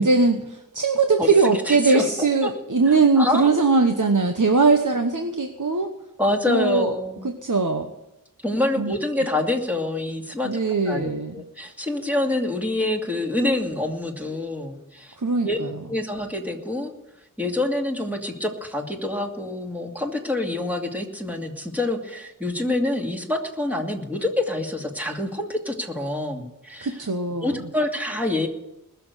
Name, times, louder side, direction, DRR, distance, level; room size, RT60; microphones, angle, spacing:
voice 1, 0.0-5.9 6.5-7.0 7.2-7.9 8.8-8.9 10.4-11.4 15.2-15.7 26.8-27.6, right 3 dB, 60° right, 5 dB, 1.2 m, -20 dB
voice 2, 1.2-2.5 2.9-3.6 6.2-7.2 8.4-10.5 10.9-11.1 11.3-15.2 15.4-15.6 15.9-16.9 17.4-27.0 27.4-28.5, left 1 dB, 5° right, 1 dB, 2.6 m, -26 dB
20.5 x 7.0 x 8.1 m, 0.92 s
wide cardioid pair, 40°, 34 cm